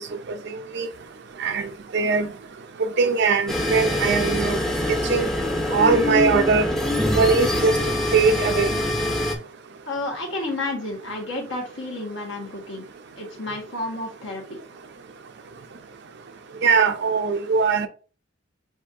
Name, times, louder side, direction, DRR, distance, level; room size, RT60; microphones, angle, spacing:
voice 1, 1.4-2.3 3.0-4.6 5.1-5.3 5.7-6.7 7.1-7.8 8.1-8.7 16.6-17.9, right 4 dB, 60° right, 0.6 m, -20 dB
sound 1, 3.5-9.4, left 1 dB, 5° left, 0.7 m, -24 dB
voice 2, 9.9-12.8 13.2-14.6, left 2 dB, 70° left, 1.5 m, -31 dB
7.0 x 2.6 x 2.7 m
head